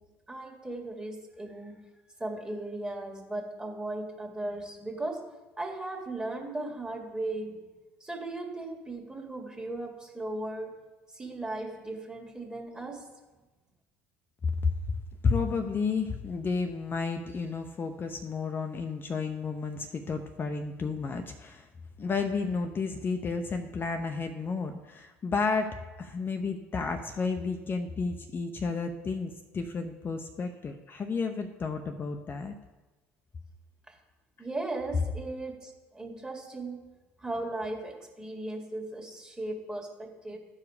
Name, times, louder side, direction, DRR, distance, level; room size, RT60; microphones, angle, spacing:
voice 1, 0.3-1.9 2.2-5.3 5.6-7.7 8.0-10.8 11.1-13.1 34.4-36.9 37.2-40.4, right 2 dB, 15° right, 2 dB, 2.0 m, -37 dB
voice 2, 15.2-21.7 22.0-32.5, left 4 dB, 35° left, 5 dB, 0.7 m, -32 dB
13.0 x 4.9 x 4.9 m, 1.2 s
hypercardioid pair, 75°, 6 cm